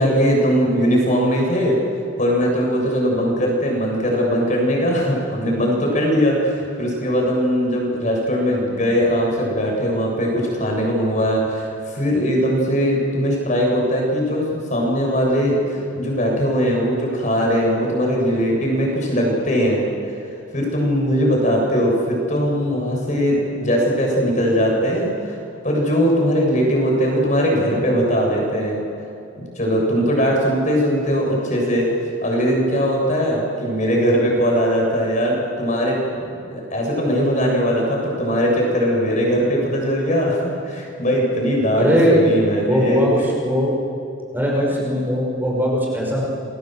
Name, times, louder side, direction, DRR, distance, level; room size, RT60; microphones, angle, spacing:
voice 1, 0.0-1.8 2.2-19.9 20.5-25.4 25.6-28.8 29.4-31.9 32.2-36.0 36.3-43.1, equal, 35° left, -1 dB, 7.5 m, -20 dB
voice 2, 41.8-42.3 42.6-43.8 44.3-46.2, equal, 10° right, -3 dB, 5.6 m, -19 dB
29.0 x 23.5 x 7.9 m, 2.6 s
head